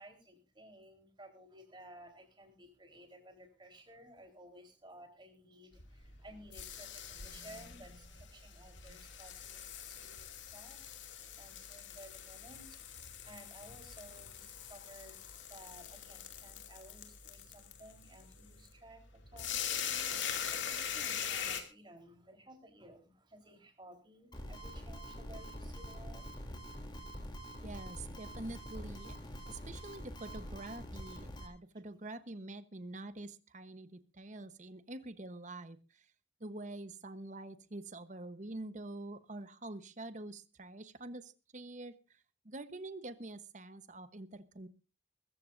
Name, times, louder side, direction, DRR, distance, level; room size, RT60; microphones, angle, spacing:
voice 1, 0.0-12.8 13.2-15.2 15.5-26.8 29.4-29.5 31.7-31.8, right 1 dB, 25° right, 4 dB, 3.9 m, -56 dB
sound 1, 5.7-21.6, left 8 dB, 80° left, 2.4 m, -42 dB
sound 2, 24.3-31.5, equal, 25° left, 3.0 m, -45 dB
voice 2, 27.6-29.2 29.5-36.1 36.4-44.7, right 2 dB, 40° right, 12 dB, 1.0 m, -46 dB
22.0 x 14.5 x 2.6 m, 0.31 s
head